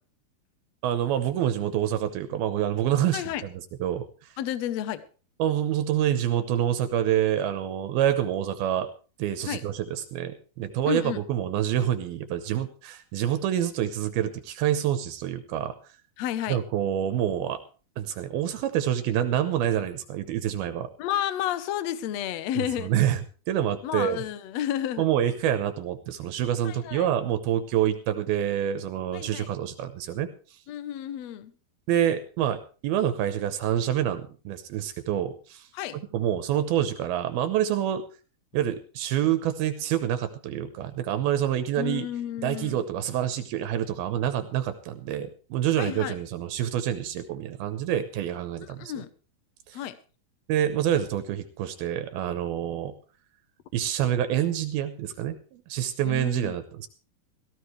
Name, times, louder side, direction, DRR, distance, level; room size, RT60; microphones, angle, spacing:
voice 1, 0.8-3.5 3.8-4.3 5.4-8.9 9.2-15.8 16.5-17.6 18.0-20.9 22.8-24.2 25.0-30.6 31.9-35.7 35.9-38.0 38.5-42.1 42.4-48.9 49.7-49.8 50.5-52.9 53.7-56.9, right 10 dB, 80° right, 2.8 m, -27 dB
voice 2, 3.1-3.4 4.4-5.0 9.5-9.6 10.9-11.2 16.2-16.6 21.0-22.9 23.8-25.1 26.6-27.1 29.1-29.5 30.7-31.5 35.7-36.0 41.8-42.8 45.8-46.1 48.8-49.1 49.7-50.0 56.0-56.6, left 11 dB, 75° left, 1.5 m, -31 dB
17.5 x 15.5 x 3.3 m
omnidirectional pair, 4.4 m